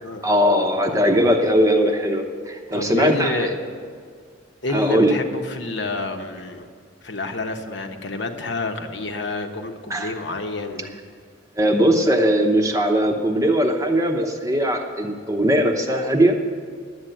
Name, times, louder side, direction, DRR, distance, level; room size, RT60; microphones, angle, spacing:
voice 1, 0.2-3.5 4.7-5.1 9.9-10.1 11.6-16.4, equal, 15° right, 3 dB, 0.8 m, -19 dB
voice 2, 2.7-3.6 4.6-6.7 7.0-11.0, left 2 dB, 60° left, 4 dB, 1.0 m, -29 dB
11.5 x 8.1 x 9.1 m, 2.1 s
head